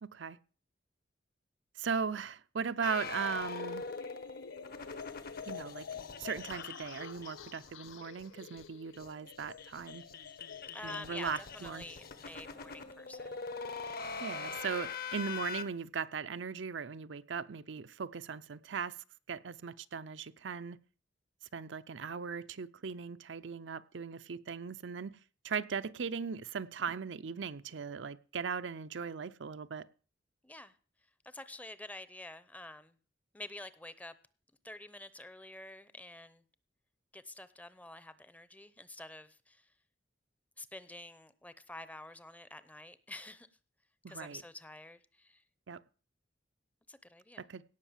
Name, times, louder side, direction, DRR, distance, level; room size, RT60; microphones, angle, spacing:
voice 1, 0.0-0.4 1.8-3.9 5.5-5.9 6.2-10.0 10.8-11.9 14.2-19.0 19.3-20.8 21.5-25.2 25.4-29.9 44.0-44.4 45.7-45.8 47.4-47.6, right 6 dB, 70° right, 0.6 m, -38 dB
sound 1, 2.8-7.9 8.2-8.3 8.6-8.7 8.9-15.6, left 5 dB, 55° left, 1.3 m, -43 dB
sound 2, 3.6-12.2, left 6 dB, 90° left, 0.7 m, -49 dB
voice 2, 10.7-13.4 30.4-30.7 31.2-33.0 33.3-34.1 34.6-36.4 37.1-39.7 40.6-43.5 44.1-45.4 46.9-47.4, left 2 dB, 10° left, 0.7 m, -48 dB
17.0 x 5.8 x 7.3 m
head